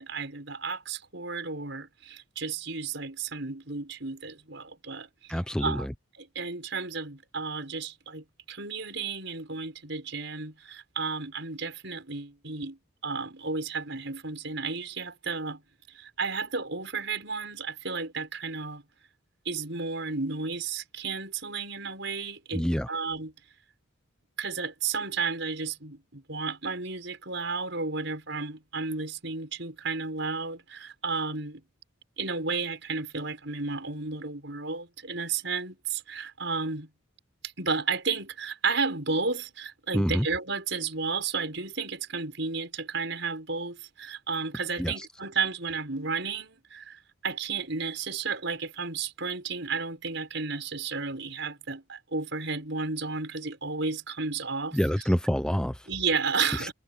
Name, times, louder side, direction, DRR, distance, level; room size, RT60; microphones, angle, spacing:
voice 1, 0.0-5.9 6.2-15.6 15.9-18.8 19.4-23.3 24.4-31.6 32.2-36.9 37.6-54.8 55.9-56.7, right 4 dB, 60° right, 6.3 m, -33 dB
voice 2, 5.3-5.9 22.5-22.9 39.9-40.3 44.8-45.1 54.7-55.9 56.6-56.7, equal, 5° left, 0.6 m, -27 dB
head